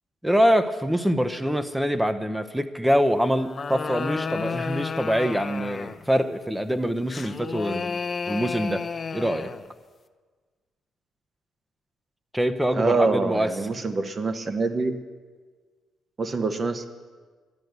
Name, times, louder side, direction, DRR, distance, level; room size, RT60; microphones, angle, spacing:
voice 1, 0.2-8.0 8.3-8.9 9.1-9.5 12.3-13.5, equal, 5° right, 11 dB, 0.8 m, -24 dB
sound 1, 3.2-6.1 7.1-9.7, left 5 dB, 35° left, 0.6 m, -32 dB
voice 2, 12.7-15.0 16.2-16.9, right 3 dB, 40° right, 8 dB, 1.1 m, -25 dB
11.0 x 10.5 x 8.0 m, 1.5 s
cardioid pair, 90°, 0 cm